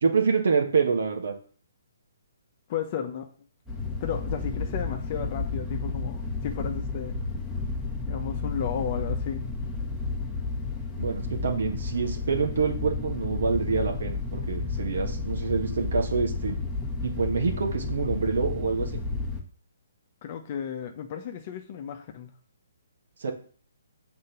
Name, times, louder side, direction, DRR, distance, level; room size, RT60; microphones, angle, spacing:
voice 1, 0.0-1.3 11.0-16.6 17.0-19.0 23.2-23.3, right 5 dB, 65° right, 3 dB, 1.6 m, -26 dB
voice 2, 2.7-3.3 4.0-7.2 8.1-9.4 20.2-22.3, left 8 dB, 40° left, 5 dB, 0.9 m, -34 dB
sound 1, 3.7-19.4, left 3 dB, ahead, 1.4 m, -32 dB
6.5 x 4.3 x 5.8 m, 0.43 s
hypercardioid pair, 140°, 0 cm